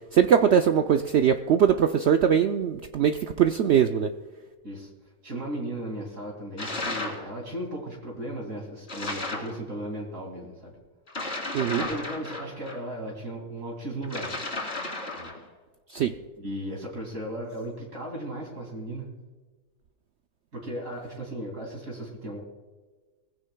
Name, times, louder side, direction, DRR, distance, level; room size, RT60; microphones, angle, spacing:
voice 1, 0.1-4.1 11.5-11.8 15.9-16.1, right 8 dB, 80° right, 7 dB, 0.6 m, -21 dB
voice 2, 5.2-10.8 11.7-14.5 15.1-15.3 16.4-19.1 20.5-22.4, right 1 dB, 55° right, -1 dB, 2.9 m, -36 dB
sound 1, 6.6-7.3 8.9-9.6 11.1-12.8 14.0-15.4, left 2 dB, 40° left, 2.8 m, -33 dB
20.5 x 15.5 x 2.3 m, 1.3 s
omnidirectional pair, 1.7 m